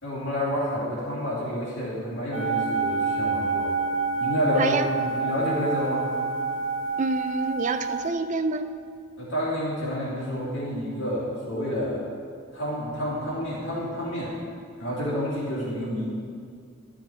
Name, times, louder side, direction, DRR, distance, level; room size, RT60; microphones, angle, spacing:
voice 1, 0.0-3.7 4.2-6.1 9.2-12.1 12.5-14.3 14.8-16.1, left 1 dB, 60° left, -7 dB, 2.5 m, -29 dB
sound 1, 2.3-8.1, right 4 dB, 85° right, 1.9 m, -27 dB
voice 2, 4.6-4.9 7.0-8.7, right 3 dB, 35° right, 9 dB, 0.4 m, -27 dB
11.5 x 5.9 x 4.4 m, 2.3 s
head